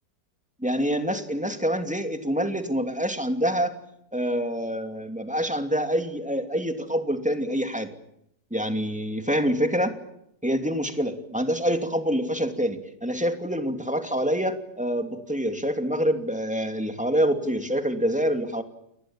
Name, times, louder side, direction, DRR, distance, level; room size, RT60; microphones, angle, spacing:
voice 1, 0.6-3.7 4.1-7.9 8.5-9.9 10.4-18.6, equal, 5° right, 7 dB, 2.7 m, -26 dB
29.0 x 21.5 x 8.9 m, 0.79 s
omnidirectional pair, 1.9 m